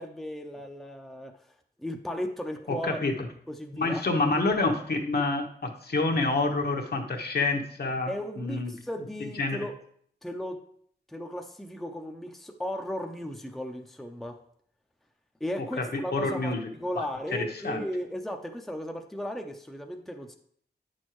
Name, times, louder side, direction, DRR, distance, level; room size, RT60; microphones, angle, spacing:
voice 1, 0.0-1.5 1.8-3.1 3.5-4.0 8.1-9.7 10.2-10.6 11.1-14.4 15.4-20.3, equal, ahead, 3 dB, 0.6 m, -36 dB
voice 2, 2.7-3.1 3.7-8.7 9.4-9.6 15.9-16.6 17.0-17.1 17.3-17.8, left 3 dB, 65° left, 2 dB, 1.1 m, -28 dB
9.4 x 6.4 x 3.1 m, 0.63 s
wide cardioid pair, 110°, 18 cm